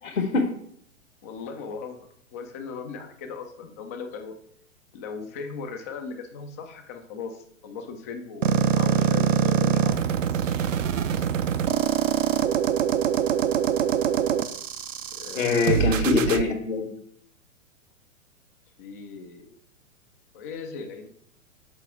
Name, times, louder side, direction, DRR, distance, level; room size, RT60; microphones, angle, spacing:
voice 1, 0.0-0.5 15.3-16.9, left 3 dB, 75° left, 2 dB, 1.6 m, -23 dB
voice 2, 1.2-4.4 4.9-10.1 15.1-15.9 18.8-19.6 20.3-21.1, left 5 dB, 15° left, 6 dB, 0.3 m, -38 dB
sound 1, 8.4-16.4, right 9 dB, 70° right, 0.6 m, -24 dB
7.0 x 4.7 x 4.5 m, 0.66 s
figure-of-eight pair, 110°, 40 cm